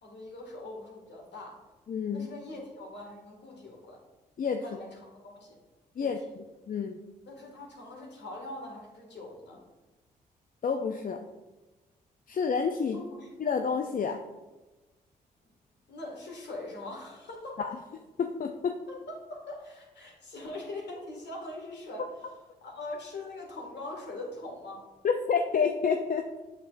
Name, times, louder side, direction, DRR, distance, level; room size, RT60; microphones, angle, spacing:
voice 1, 0.0-1.6 2.1-4.0 4.6-5.6 6.0-6.1 7.2-9.6 12.9-13.3 15.9-17.6 18.9-22.3 22.6-24.8, left 2 dB, 60° left, -1 dB, 2.1 m, -42 dB
voice 2, 1.9-2.3 4.4-4.6 6.0-7.0 10.6-11.3 12.3-13.0 13.4-14.2 17.6-17.8 18.2-18.8 25.0-26.3, left 6 dB, 45° left, 5 dB, 0.6 m, -29 dB
7.7 x 6.7 x 2.6 m, 1.2 s
hypercardioid pair, 40°, 20 cm